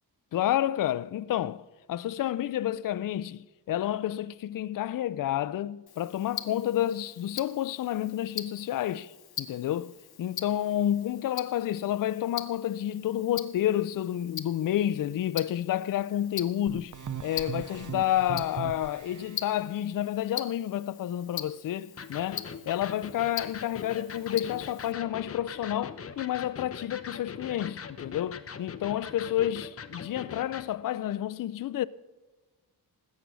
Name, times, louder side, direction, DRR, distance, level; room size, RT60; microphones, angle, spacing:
voice 1, 0.3-9.1 9.4-9.9 10.2-16.9 17.2-31.9, left 12 dB, 60° left, 0.5 m, -30 dB
Tick-tock, 5.9-24.9, left 9 dB, 75° left, 1.0 m, -43 dB
sound 1, 16.7-19.4, right 8 dB, 50° right, 0.7 m, -39 dB
Electric guitar, 22.0-30.7, left 6 dB, 40° left, 0.8 m, -42 dB
19.0 x 8.4 x 6.1 m
wide cardioid pair, 150°, 38 cm